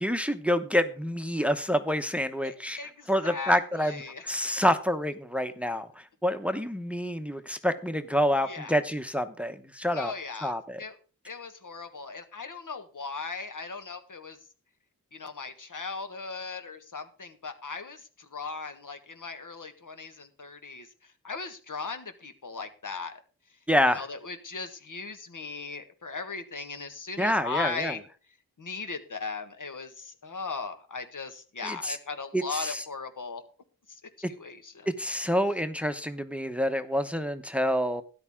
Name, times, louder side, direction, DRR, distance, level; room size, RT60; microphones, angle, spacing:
voice 1, 0.0-2.8 3.1-10.1 10.4-10.8 23.7-24.0 27.2-27.9 31.6-32.0 32.3-32.8 34.2-34.3 34.9-38.0, equal, 5° right, 10 dB, 0.9 m, -27 dB
voice 2, 2.4-4.3 8.4-8.8 9.9-10.5 10.8-11.0 11.2-14.4 15.1-23.2 23.9-28.0 28.6-33.4 33.9-34.9, left 4 dB, 65° left, 7 dB, 1.6 m, -38 dB
13.0 x 10.5 x 3.7 m, 0.38 s
wide cardioid pair, 60°, 34 cm